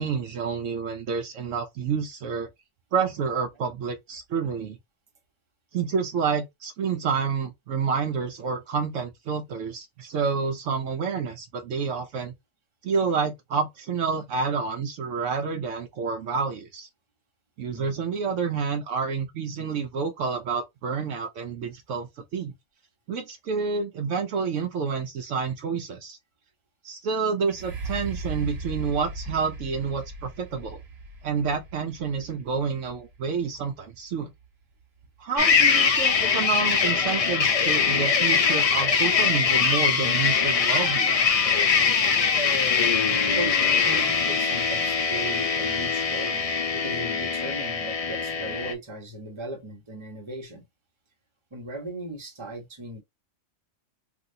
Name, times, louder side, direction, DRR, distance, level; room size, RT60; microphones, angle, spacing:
voice 1, 0.0-2.5 2.9-4.8 5.7-12.3 12.8-16.9 17.6-22.5 23.1-26.2 26.8-30.8 31.2-34.3 35.2-41.2, right 5 dB, 70° right, 0.9 m, -29 dB
sound 1, 27.4-35.2 35.8-35.9, right 2 dB, 55° right, 1.2 m, -38 dB
sound 2, 35.4-48.7, left 6 dB, 65° left, 0.3 m, -22 dB
voice 2, 43.3-50.6 51.5-53.0, right 1 dB, 25° right, 0.9 m, -37 dB
3.3 x 2.6 x 2.6 m
omnidirectional pair, 1.4 m